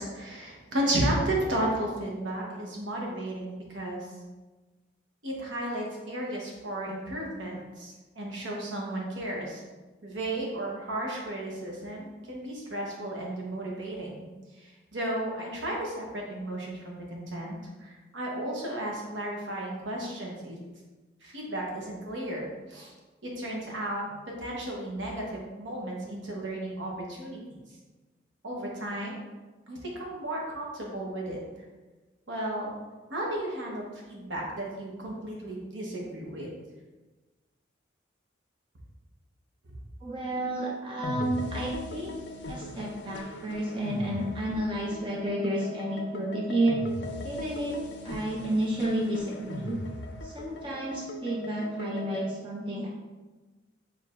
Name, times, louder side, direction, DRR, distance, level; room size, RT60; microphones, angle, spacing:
voice 1, 0.0-4.1 5.2-9.6 10.0-14.3 14.6-20.6 21.2-22.9 23.2-24.0 24.4-27.6 28.4-29.2 29.7-31.4 32.3-32.7 33.1-36.5 49.5-49.6, right 1 dB, 75° right, -2 dB, 1.0 m, -34 dB
voice 2, 40.0-42.1 42.5-46.8 47.2-49.8 50.2-52.9, right 1 dB, 25° right, -2 dB, 0.4 m, -31 dB
sound 1, 41.0-52.3, left 1 dB, 60° left, 0.4 m, -39 dB
4.6 x 3.4 x 2.4 m, 1.2 s
head